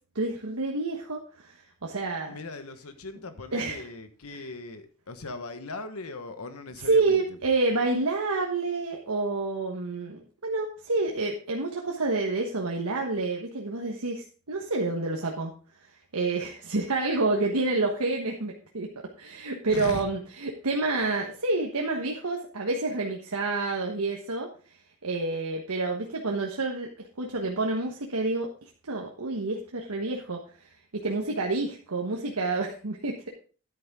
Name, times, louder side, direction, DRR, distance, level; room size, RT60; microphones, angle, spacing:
voice 1, 0.1-2.4 3.5-3.9 4.3-4.4 6.9-15.5 16.1-18.9 19.2-24.5 25.0-30.4 30.9-33.3, right 3 dB, 90° right, 0 dB, 1.3 m, -28 dB
voice 2, 2.3-7.2 19.7-20.0, left 3 dB, 80° left, 9 dB, 1.2 m, -39 dB
10.5 x 8.7 x 3.6 m, 0.38 s
head